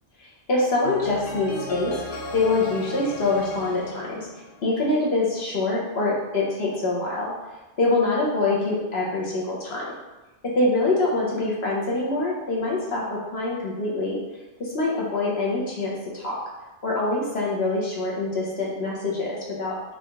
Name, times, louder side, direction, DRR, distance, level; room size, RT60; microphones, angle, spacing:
voice 1, 0.5-4.3 4.6-7.3 7.8-9.9 10.4-14.2 14.6-16.4 16.8-19.8, left 2 dB, 75° left, -4 dB, 1.2 m, -25 dB
sound 1, 0.8-4.9, left 2 dB, 60° left, 0.8 m, -36 dB
3.8 x 3.0 x 3.6 m, 1.1 s
omnidirectional pair, 1.1 m